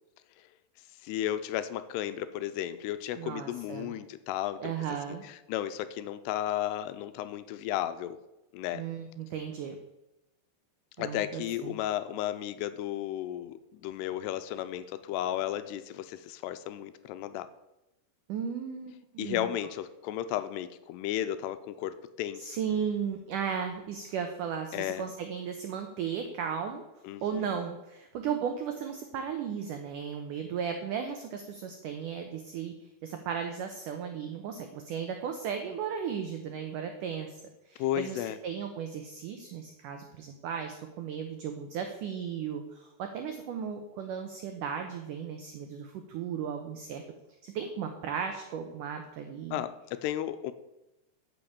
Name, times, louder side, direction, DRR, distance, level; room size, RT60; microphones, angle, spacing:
voice 1, 1.0-4.7 5.2-8.2 8.5-8.8 11.0-17.5 19.2-22.6 24.7-25.0 27.0-27.4 37.8-38.4 49.5-50.5, left 12 dB, 85° left, 12 dB, 2.6 m, -34 dB
voice 2, 3.2-3.9 4.6-5.3 8.7-9.8 11.0-11.8 18.3-19.5 22.4-26.9 27.2-32.7 33.0-37.4 37.7-47.0 47.4-49.6, right 7 dB, 85° right, 5 dB, 1.8 m, -35 dB
9.8 x 5.9 x 8.5 m, 0.96 s
omnidirectional pair, 4.9 m